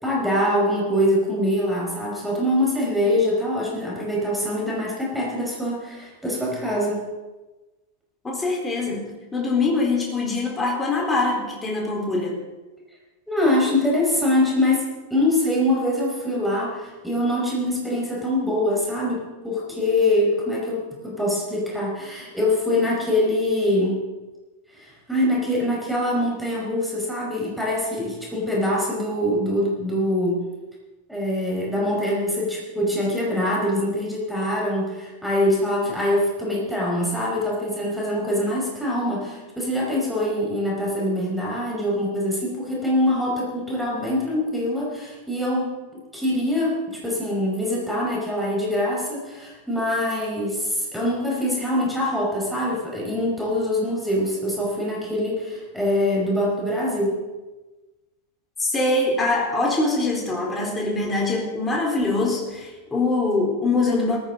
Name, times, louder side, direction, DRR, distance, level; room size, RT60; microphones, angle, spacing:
voice 1, 0.0-7.1 13.3-24.1 25.1-30.4 31.1-45.8 46.1-57.2, left 1 dB, ahead, -3 dB, 5.3 m, -24 dB
voice 2, 8.2-12.4 58.6-64.2, left 3 dB, 15° left, -1 dB, 4.2 m, -23 dB
18.5 x 15.5 x 4.0 m, 1.2 s
figure-of-eight pair, 90°, 0 cm